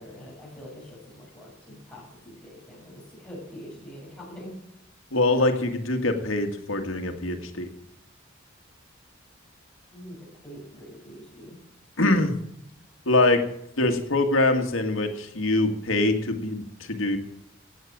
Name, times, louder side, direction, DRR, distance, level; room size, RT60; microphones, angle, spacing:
voice 1, 0.0-4.5 9.9-11.6, equal, 5° left, -5 dB, 6.9 m, -44 dB
voice 2, 5.1-7.7 12.0-12.3 13.1-13.4 13.8-17.2, left 2 dB, 85° left, 5 dB, 1.9 m, -23 dB
16.0 x 8.6 x 7.5 m, 0.75 s
head